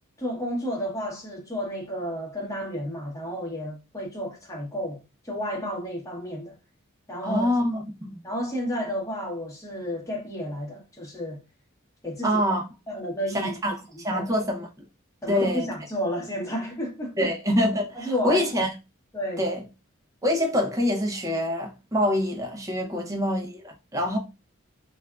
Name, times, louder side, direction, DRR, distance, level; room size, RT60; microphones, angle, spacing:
voice 1, 0.2-5.0 5.2-6.5 7.1-7.5 8.2-11.4 12.0-12.4 12.9-13.6 14.1-14.3 15.2-17.3 17.9-18.4 19.1-19.4 22.9-23.1, equal, 15° left, 0.9 m, -31 dB
voice 2, 7.2-8.2 12.2-12.6 13.3-14.7 15.3-15.7 17.2-18.7 19.4-19.6 20.2-24.2, equal, 15° right, 0.6 m, -25 dB
3.3 x 2.3 x 2.3 m
head